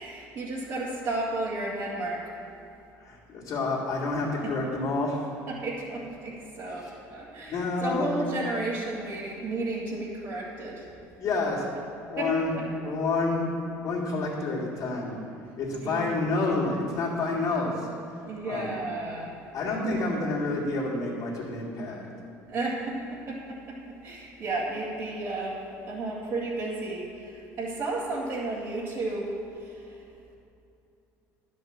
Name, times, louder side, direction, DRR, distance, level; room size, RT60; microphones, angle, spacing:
voice 1, 0.0-2.4 4.4-4.5 5.5-10.8 12.2-12.3 15.8-16.2 18.3-19.4 22.5-25.6 25.9-30.0, right 2 dB, 55° right, -8 dB, 2.2 m, -33 dB
voice 2, 3.0-5.3 6.8-6.9 7.5-8.1 11.2-11.7 12.1-15.1 15.6-17.9 18.4-18.8 19.5-22.1, left 3 dB, 60° left, -9 dB, 2.4 m, -29 dB
10.5 x 5.4 x 7.4 m, 2.7 s
supercardioid pair, 80°, 7 cm